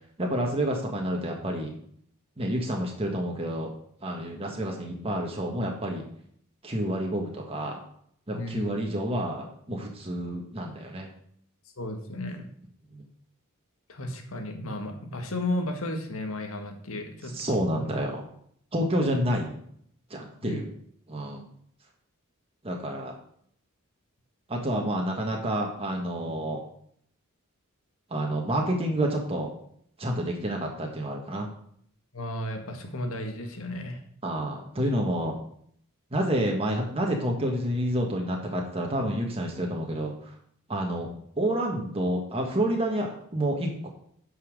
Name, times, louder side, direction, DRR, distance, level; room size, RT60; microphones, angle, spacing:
voice 1, 0.2-1.7 2.4-3.7 4.0-6.0 6.6-7.8 8.3-11.1 12.9-13.0 17.3-18.3 18.7-19.5 20.1-20.7 21.1-21.4 22.6-23.1 24.5-26.6 28.1-29.5 30.0-31.5 34.2-35.3 36.1-40.3 40.7-41.1 41.3-43.9, right 1 dB, 25° right, 0 dB, 1.5 m, -29 dB
voice 2, 8.3-8.7 11.8-12.5 13.9-17.9 20.4-20.6 32.1-34.0, left 1 dB, 70° left, 4 dB, 1.9 m, -34 dB
9.6 x 5.7 x 6.5 m, 0.64 s
head